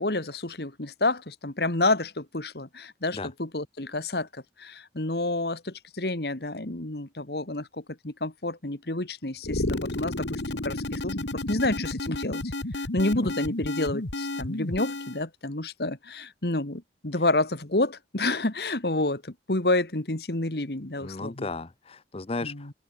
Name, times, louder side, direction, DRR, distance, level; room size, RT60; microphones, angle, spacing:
voice 1, 0.0-7.7 8.0-12.4 12.8-21.5 22.4-22.7, left 2 dB, 60° left, 2.1 m, -29 dB
sound 1, 9.4-15.2, left 2 dB, 85° left, 2.0 m, -32 dB
voice 2, 21.0-22.7, left 3 dB, 35° left, 0.7 m, -35 dB
head